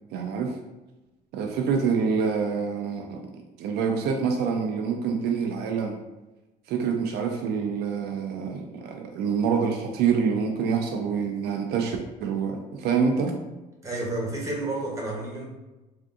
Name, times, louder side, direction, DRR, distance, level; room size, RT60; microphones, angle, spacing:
voice 1, 0.1-0.6 1.3-6.0 6.7-13.4, right 6 dB, 75° right, 2 dB, 0.4 m, -26 dB
voice 2, 13.8-15.4, right 2 dB, 20° right, -3 dB, 1.1 m, -30 dB
3.5 x 2.5 x 2.6 m, 1.1 s
cardioid pair, 110°, 17 cm